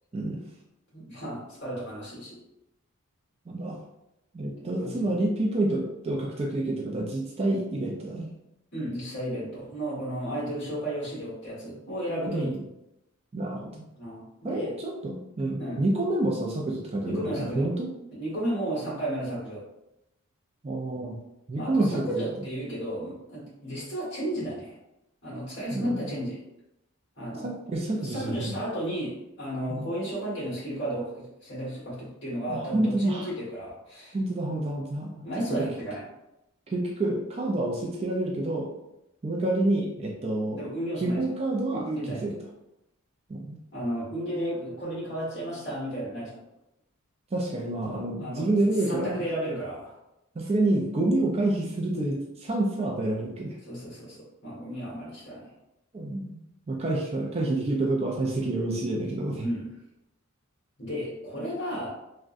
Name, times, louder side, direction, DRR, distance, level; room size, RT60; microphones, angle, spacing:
voice 1, 0.1-0.4 3.5-3.8 4.3-8.3 12.3-12.6 13.3-13.9 14.4-17.9 20.6-21.2 21.5-22.2 25.7-26.0 27.4-28.6 29.7-29.9 32.5-33.3 34.1-35.7 36.7-38.7 39.2-40.6 41.0-41.9 42.2-42.3 43.3-43.6 47.3-49.2 50.4-53.6 55.9-59.5, right 2 dB, 25° right, -1 dB, 0.3 m, -28 dB
voice 2, 0.9-2.4 4.6-5.2 8.7-12.5 14.0-14.7 15.6-15.8 17.0-17.7 18.1-19.7 21.5-24.7 25.2-26.4 27.2-27.5 27.9-34.2 35.2-36.1 40.6-41.2 41.7-42.4 43.7-46.4 47.9-48.5 48.8-49.9 53.6-55.5 59.4-59.7 60.8-61.9, right 1 dB, 50° left, -8 dB, 1.5 m, -33 dB
3.5 x 2.1 x 2.5 m, 0.88 s
head